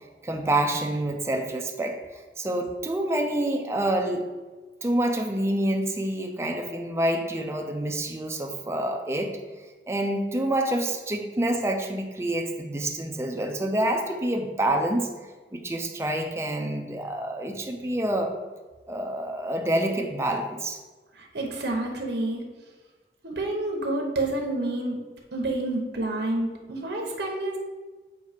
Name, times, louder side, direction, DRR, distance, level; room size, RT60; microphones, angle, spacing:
voice 1, 0.2-4.3 4.8-9.3 9.9-15.1 15.5-18.3 18.9-20.8, right 1 dB, 15° right, 3 dB, 0.5 m, -27 dB
voice 2, 21.1-22.4 23.2-25.0 25.3-27.6, right 2 dB, 70° right, 1 dB, 1.0 m, -29 dB
8.0 x 2.7 x 5.0 m, 1.3 s
head